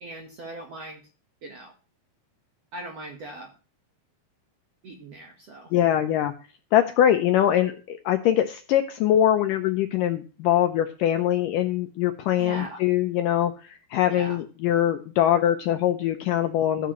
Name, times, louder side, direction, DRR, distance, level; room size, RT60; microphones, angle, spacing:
voice 1, 0.0-1.0 1.4-1.7 2.7-3.5 4.8-5.7 12.4-12.8 14.1-14.4, right 2 dB, 60° right, 2 dB, 1.7 m, -39 dB
voice 2, 5.7-6.3 6.7-16.9, left 11 dB, 80° left, 7 dB, 1.9 m, -23 dB
14.0 x 9.4 x 3.0 m, 0.36 s
omnidirectional pair, 4.5 m